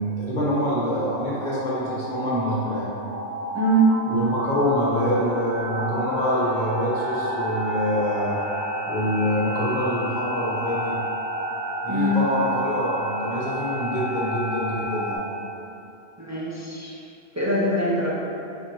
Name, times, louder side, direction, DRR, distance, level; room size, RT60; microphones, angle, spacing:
voice 1, 0.0-2.9 4.1-8.4 8.8-10.9 11.8-15.2, equal, 45° left, -8 dB, 1.1 m, -25 dB
sound 1, 0.9-15.2, equal, 60° right, 1.0 m, -31 dB
voice 2, 3.5-3.9 11.9-12.2 16.2-17.0 17.4-18.2, right 2 dB, 25° right, -7 dB, 0.4 m, -22 dB
6.8 x 2.6 x 2.9 m, 2.8 s
omnidirectional pair, 1.1 m